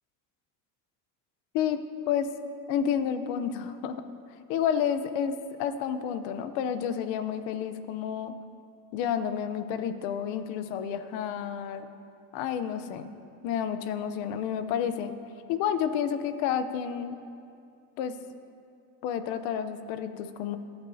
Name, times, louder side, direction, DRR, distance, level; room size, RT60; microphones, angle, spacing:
voice 1, 2.7-4.0 4.5-8.3 8.9-11.9 12.3-13.1 13.4-15.1 15.5-17.2 18.0-18.1 19.0-20.6, left 8 dB, 65° left, 10 dB, 0.9 m, -30 dB
25.5 x 8.9 x 2.8 m, 2.4 s
cardioid pair, 150°, 48 cm